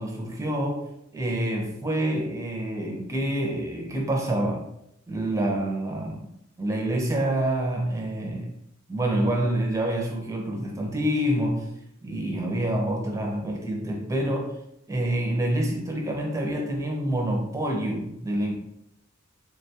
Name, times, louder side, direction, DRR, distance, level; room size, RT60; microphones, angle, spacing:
voice 1, 0.0-4.7 5.1-6.2 6.6-8.5 8.9-11.7 12.0-14.6 14.9-18.5, right 1 dB, 15° right, 1 dB, 0.5 m, -27 dB
3.4 x 2.2 x 2.8 m, 0.77 s
head